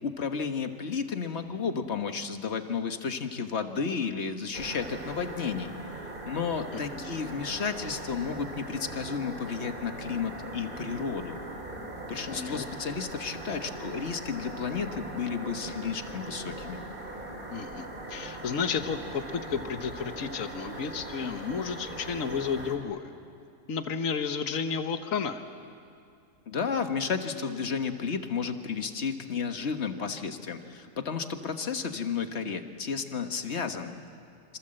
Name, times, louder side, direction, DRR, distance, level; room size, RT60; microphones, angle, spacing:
voice 1, 0.0-5.7 6.2-11.4 12.1-16.8 26.5-34.0, left 5 dB, 50° left, 7 dB, 1.6 m, -32 dB
sound 1, 4.5-22.8, right 1 dB, 35° right, 3.5 m, -40 dB
voice 2, 6.7-7.2 12.1-12.7 17.5-23.1 23.7-25.4, left 6 dB, 65° left, 8 dB, 1.6 m, -32 dB
28.0 x 26.5 x 7.8 m, 2.4 s
omnidirectional pair, 1.5 m